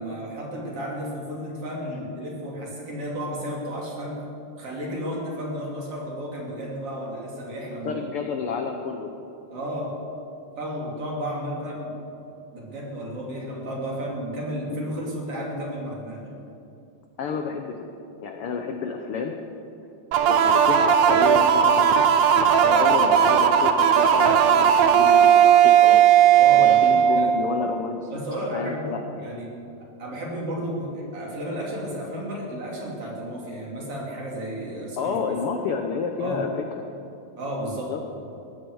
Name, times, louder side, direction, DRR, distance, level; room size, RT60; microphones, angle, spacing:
voice 1, 0.0-4.2 4.6-8.3 9.5-9.9 10.6-12.0 12.5-16.3 22.6-22.9 26.4-27.3 28.1-29.6 30.0-35.4 36.2-36.4 37.4-37.9, equal, 50° right, -3 dB, 3.8 m, -32 dB
voice 2, 7.8-9.1 17.2-17.9 18.2-19.3 20.3-22.1 22.4-26.1 26.6-28.2 28.5-29.0 35.0-36.5 37.9-38.0, left 5 dB, 70° left, 4 dB, 1.4 m, -30 dB
sound 1, 20.1-27.7, right 8 dB, 70° right, 1.9 m, -17 dB
19.0 x 14.5 x 4.7 m, 2.8 s
omnidirectional pair, 3.6 m